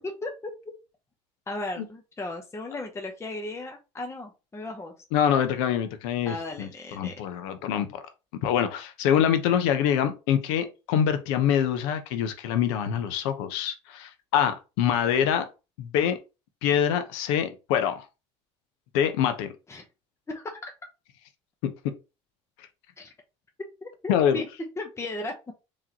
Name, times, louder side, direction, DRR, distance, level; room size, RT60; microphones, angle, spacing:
voice 1, 1.5-4.9 6.3-7.1 19.7-19.8 20.3-20.7 23.0-23.1 23.8-24.5 24.8-25.3, left 2 dB, 20° left, 0.8 m, -36 dB
voice 2, 5.1-6.7 7.0-7.9 8.4-15.5 15.8-16.2 16.6-18.0 18.9-19.5 21.6-21.7 24.1-24.4, left 9 dB, 80° left, 0.8 m, -25 dB
3.7 x 3.2 x 2.8 m
supercardioid pair, 85°, 15 cm